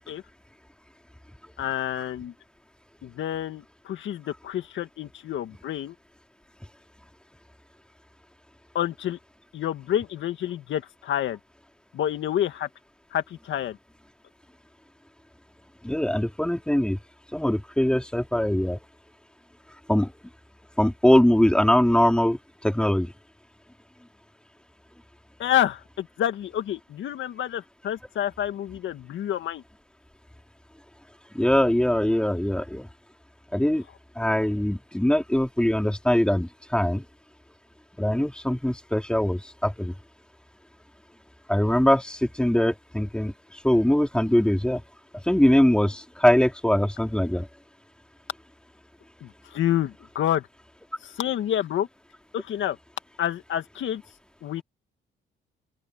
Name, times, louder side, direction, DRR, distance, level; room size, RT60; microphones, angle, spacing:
voice 1, 1.6-2.3 3.0-5.9 8.7-9.2 9.5-11.4 11.9-12.7 13.1-13.8 25.4-29.6 49.2-50.5 51.0-51.9 52.3-52.8 53.2-54.0 54.4-54.6, left 11 dB, 75° left, 2.0 m, -28 dB
voice 2, 15.8-17.0 17.3-18.8 19.9-20.1 20.8-22.4 22.6-23.1 31.3-32.9 33.5-33.8 34.2-37.0 38.0-39.9 41.5-43.3 43.6-44.8 45.3-47.5, left 1 dB, 5° left, 3.9 m, -22 dB
open air
cardioid pair, 90°, 20 cm